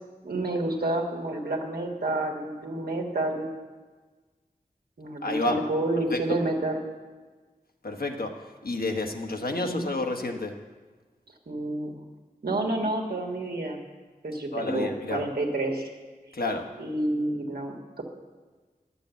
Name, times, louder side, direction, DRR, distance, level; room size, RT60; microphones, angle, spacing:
voice 1, 0.2-3.5 5.0-6.8 9.5-9.9 11.5-12.0 12.4-13.8 14.2-15.9 16.8-18.0, right 2 dB, 90° right, 0 dB, 1.6 m, -29 dB
voice 2, 5.2-5.6 6.1-6.4 7.8-8.3 8.6-10.5 14.5-15.2 15.8-15.9 16.3-16.7, left 2 dB, 75° left, 3 dB, 1.2 m, -29 dB
10.5 x 6.9 x 8.1 m, 1.4 s
wide cardioid pair, 50°, 16 cm